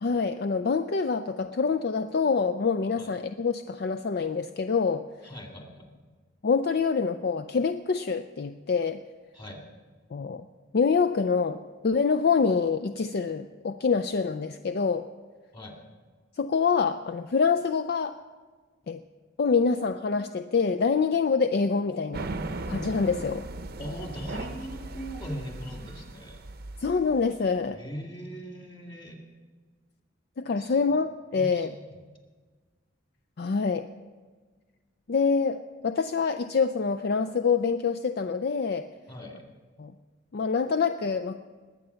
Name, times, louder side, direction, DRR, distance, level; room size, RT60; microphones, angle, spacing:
voice 1, 0.0-5.0 6.4-9.0 10.1-10.4 10.7-15.1 16.4-18.2 18.9-19.0 19.4-22.3 22.7-23.4 26.8-27.8 30.4-31.8 33.4-33.8 35.1-35.6 35.8-38.9 39.8-39.9 40.3-41.4, left 5 dB, 50° left, 9 dB, 0.4 m, -26 dB
voice 2, 5.2-5.9 9.3-9.6 15.5-15.8 23.8-26.4 27.7-29.2 30.6-30.7 31.4-31.9 39.1-39.4, equal, 25° left, 2 dB, 2.1 m, -40 dB
sound 1, 22.1-27.5, right 2 dB, 50° right, 0.7 m, -38 dB
20.5 x 8.7 x 5.7 m, 1.4 s
head